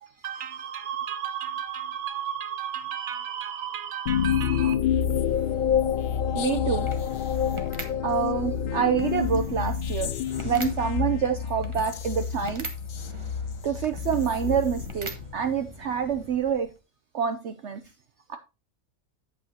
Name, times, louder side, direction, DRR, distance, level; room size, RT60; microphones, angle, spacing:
voice 1, 0.0-4.8, right 9 dB, 85° right, 1.4 m, -34 dB
sound 1, 4.1-15.6, left 8 dB, 75° left, 0.4 m, -28 dB
sound 2, 4.8-16.8, right 2 dB, 25° right, 1.1 m, -43 dB
voice 2, 6.3-6.9 8.0-10.1 10.4-12.7 13.6-16.7 17.1-17.8 18.3-18.4, right 7 dB, 60° right, 0.9 m, -27 dB
8.8 x 8.2 x 2.9 m
omnidirectional pair, 1.5 m